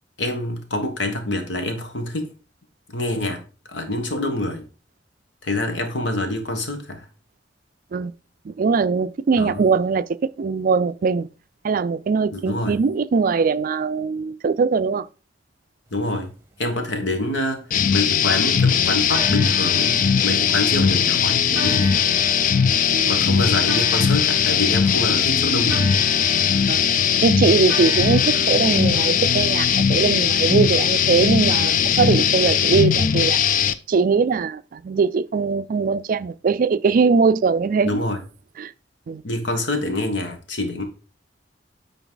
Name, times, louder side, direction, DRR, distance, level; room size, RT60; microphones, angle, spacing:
voice 1, 0.2-2.3 2.9-4.6 5.4-7.1 9.4-9.6 12.3-12.8 15.9-16.3 16.6-17.6 17.9-22.0 23.1-25.9 28.3-28.6 31.6-31.9 37.8-38.2 39.2-40.8, left 1 dB, 85° left, 1.5 m, -26 dB
voice 2, 8.5-11.3 11.6-15.1 22.9-23.2 26.7-26.9 27.2-33.4 33.9-38.0 38.6-38.7 39.1-39.2, right 5 dB, 50° right, 0.4 m, -21 dB
sound 1, 17.1-18.6 19.1-29.7, right 1 dB, 15° right, 1.3 m, -37 dB
sound 2, 17.7-33.7, left 7 dB, 50° left, 0.4 m, -19 dB
9.1 x 4.1 x 4.0 m
head